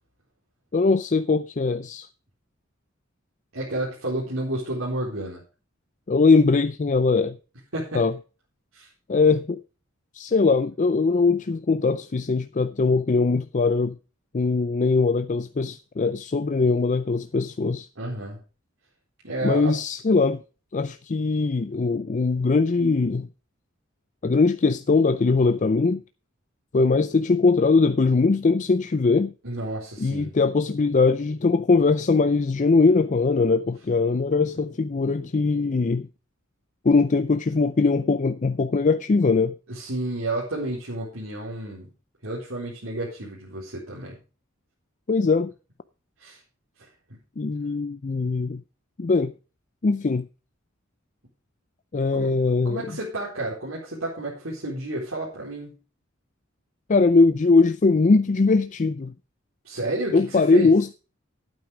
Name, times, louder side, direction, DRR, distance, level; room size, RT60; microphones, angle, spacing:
voice 1, 0.7-2.1 6.1-7.4 7.9-8.1 9.1-9.6 10.1-14.0 14.3-17.9 19.4-20.4 20.7-23.3 24.2-26.0 26.7-29.3 30.0-36.1 36.8-39.5 45.1-45.5 47.4-48.6 49.0-49.3 49.8-50.3 51.9-52.8 56.9-59.1 60.1-60.9, left 4 dB, 35° left, 0.5 m, -21 dB
voice 2, 3.5-5.4 7.7-8.0 8.7-8.9 18.0-18.4 19.2-19.7 29.4-30.3 39.7-41.9 42.2-44.2 46.2-46.4 46.8-46.9 52.1-52.4 52.6-55.7 59.6-60.7, right 1 dB, 80° right, 4.2 m, -31 dB
12.0 x 9.1 x 5.0 m
head